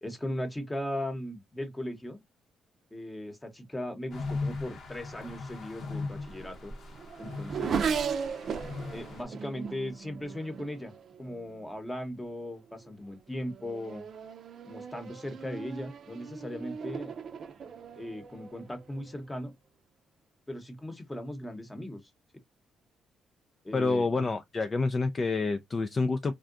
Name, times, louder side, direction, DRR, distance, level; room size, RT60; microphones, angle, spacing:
voice 1, 0.0-2.2 2.9-6.7 7.2-7.9 8.9-10.9 11.2-14.1 14.7-17.1 18.0-19.5 20.5-22.0 23.6-24.1, left 1 dB, 15° left, 0.9 m, -38 dB
sound 1, 4.1-9.2, left 3 dB, 60° left, 0.8 m, -38 dB
Race car auto racing / Accelerating revving vroom, 5.8-11.7 12.5-12.9 13.3-19.2, right 6 dB, 60° right, 0.5 m, -37 dB
voice 2, 23.7-26.3, left 3 dB, 35° left, 0.3 m, -28 dB
3.6 x 2.2 x 2.4 m
cardioid pair, 90°, 0 cm